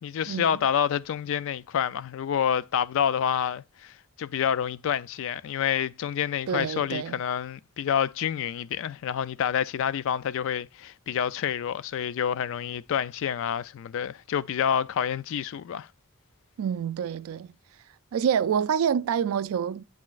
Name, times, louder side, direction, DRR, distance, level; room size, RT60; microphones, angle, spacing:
voice 1, 0.0-15.9, left 8 dB, 60° left, 0.3 m, -28 dB
voice 2, 6.5-7.2 16.6-17.5 18.1-19.8, right 8 dB, 70° right, 0.3 m, -27 dB
7.4 x 5.8 x 2.4 m
head